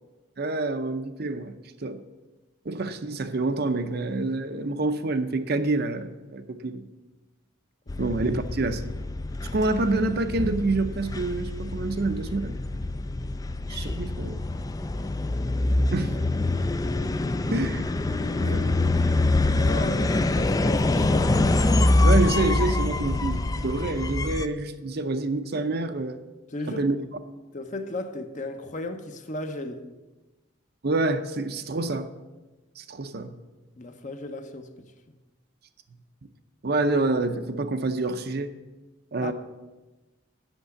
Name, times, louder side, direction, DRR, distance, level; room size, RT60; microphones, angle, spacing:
voice 1, 0.4-1.5 1.8-2.0 2.6-6.8 8.0-8.8 9.5-12.6 13.7-14.4 15.9-16.2 16.4-16.5 17.5-17.9 18.4-18.9 22.0-26.2 26.7-27.0 30.8-32.1 32.8-33.3 36.6-38.5 39.1-39.3, right 2 dB, 50° right, 0.6 m, -27 dB
sound 1, 7.9-24.5, left 2 dB, 20° left, 0.3 m, -25 dB
voice 2, 17.2-17.5 19.5-21.3 26.5-26.8 27.5-29.8 33.8-35.2 39.2-39.3, left 2 dB, 40° left, 0.8 m, -35 dB
8.0 x 6.7 x 8.3 m
head